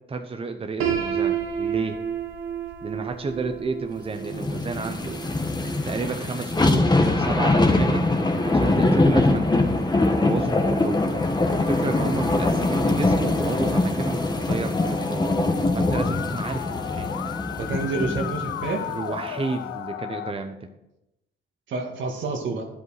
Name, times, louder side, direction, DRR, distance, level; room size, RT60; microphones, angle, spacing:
voice 1, 0.1-2.0 2.8-5.2 5.8-8.1 8.4-9.7 10.1-11.1 11.5-17.1 18.9-20.6, right 4 dB, 30° right, 6 dB, 0.9 m, -31 dB
Piano, 0.8-6.6, right 8 dB, 90° right, 1.5 m, -31 dB
sound 1, 4.3-18.7 19.2-19.3, left 2 dB, 20° left, 1.2 m, -23 dB
Musical instrument, 14.7-20.3, left 11 dB, 80° left, 0.6 m, -34 dB
voice 2, 17.6-18.8 21.7-22.6, right 3 dB, 70° right, 3 dB, 2.0 m, -29 dB
10.5 x 8.1 x 4.9 m, 0.89 s
cardioid pair, 90°, 20 cm